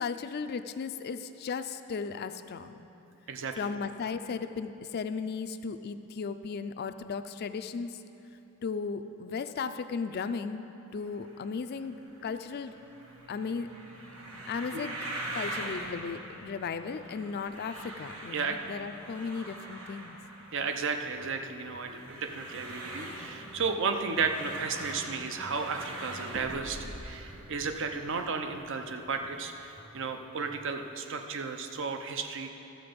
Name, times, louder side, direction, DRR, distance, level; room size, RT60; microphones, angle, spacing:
voice 1, 0.0-2.9 3.6-8.0 8.6-10.7 10.9-12.0 12.2-12.7 13.3-13.7 14.5-15.0 15.3-20.2, left 5 dB, 50° left, 10 dB, 0.4 m, -36 dB
voice 2, 3.3-3.7 18.3-18.6 20.5-32.5, right 5 dB, 60° right, 6 dB, 0.6 m, -33 dB
sound 1, 10.9-29.8, right 1 dB, 85° right, 1.4 m, -44 dB
sound 2, 20.9-31.0, right 1 dB, 25° right, 0.8 m, -54 dB
sound 3, 22.5-23.3 23.8-23.9 24.1-24.8 26.3-27.5 27.9-28.3, equal, 40° right, 2.0 m, -46 dB
12.5 x 7.6 x 5.2 m, 3.0 s
head